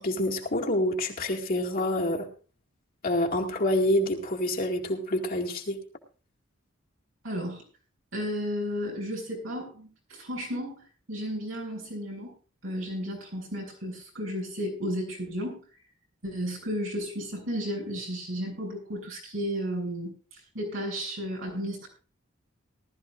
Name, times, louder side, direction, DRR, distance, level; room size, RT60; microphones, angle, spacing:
voice 1, 0.0-2.3 3.0-5.8, left 1 dB, 50° left, 1 dB, 2.2 m, -27 dB
voice 2, 7.2-7.6 8.1-10.8 11.1-12.3 12.6-15.6 16.2-21.9, equal, 85° right, -1 dB, 7.4 m, -33 dB
19.0 x 13.5 x 2.6 m, 0.38 s
head